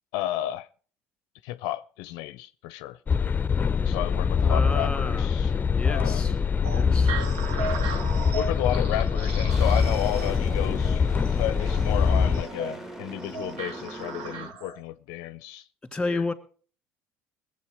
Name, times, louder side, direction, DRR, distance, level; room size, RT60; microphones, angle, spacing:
voice 1, 0.1-0.7 1.4-3.0 3.8-5.5 5.8-6.4 8.3-15.7 16.0-16.2, left 13 dB, 70° left, 0.5 m, -32 dB
sound 1, 3.1-12.4, left 6 dB, 25° left, 0.6 m, -24 dB
voice 2, 4.5-5.3 5.7-6.4 6.7-7.2 15.9-16.3, left 2 dB, 10° left, 2.2 m, -31 dB
sound 2, 6.6-14.8, right 5 dB, 75° right, 1.3 m, -37 dB
sound 3, 9.5-14.5, right 1 dB, 5° right, 1.6 m, -40 dB
21.5 x 7.9 x 4.9 m
hypercardioid pair, 70°, 7 cm